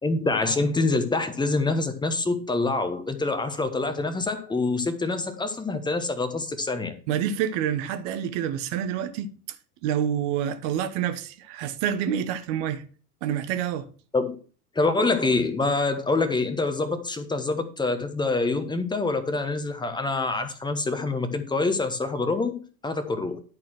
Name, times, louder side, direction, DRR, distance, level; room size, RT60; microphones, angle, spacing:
voice 1, 0.0-7.0 14.1-14.3 14.7-23.4, left 3 dB, 10° left, 1.3 m, -26 dB
voice 2, 7.1-9.3 9.8-12.8 13.2-13.9, right 9 dB, 50° right, 1.2 m, -27 dB
10.5 x 4.3 x 6.2 m
figure-of-eight pair, 85°, 47 cm